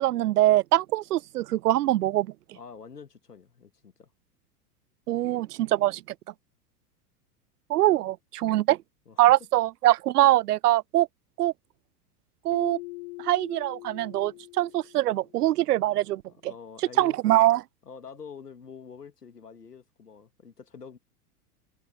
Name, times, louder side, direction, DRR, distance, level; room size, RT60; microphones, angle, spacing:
voice 1, 0.0-2.3 5.1-6.0 7.7-8.8 9.2-11.1 11.4-11.5 12.4-12.8 13.2-16.5 17.0-17.6, right 14 dB, 80° right, 0.5 m, -23 dB
voice 2, 2.5-4.1 7.9-8.1 9.1-9.3 16.3-17.2 17.8-21.0, left 6 dB, 90° left, 2.4 m, -46 dB
Keyboard (musical), 12.5-15.3, left 24 dB, 50° left, 1.0 m, -42 dB
hypercardioid pair, 90°, 46 cm